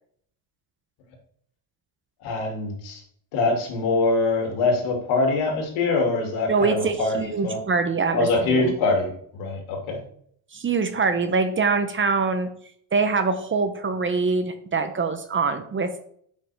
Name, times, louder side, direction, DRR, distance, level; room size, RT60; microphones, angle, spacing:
voice 1, 2.2-3.0 3.3-7.6 8.1-10.0, left 3 dB, 80° left, 1 dB, 2.6 m, -24 dB
voice 2, 6.5-8.7 10.5-12.5 12.9-16.1, right 4 dB, 25° right, 8 dB, 0.8 m, -24 dB
8.5 x 5.6 x 3.5 m, 0.62 s
cardioid pair, 130°, 48 cm